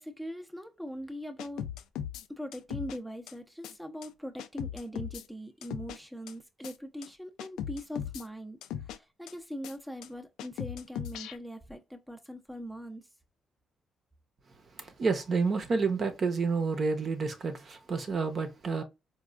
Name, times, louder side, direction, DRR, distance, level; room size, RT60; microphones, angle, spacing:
voice 1, 0.0-1.7 2.3-13.1, equal, ahead, 0.5 m, -41 dB
sound 1, 1.4-2.2 2.5-3.0 3.3-3.4 3.6-3.7 4.0-4.1 4.4-5.2 5.6-6.0 6.3-6.4 6.6-6.7 7.0-7.1 7.4-8.2 8.6-9.0 9.3-9.4 9.6-9.7 10.0-10.1 10.4-11.4, left 10 dB, 90° left, 0.3 m, -38 dB
voice 2, 14.8-18.8, right 4 dB, 45° right, 0.7 m, -29 dB
4.1 x 2.3 x 2.3 m
cardioid pair, 90°, 0 cm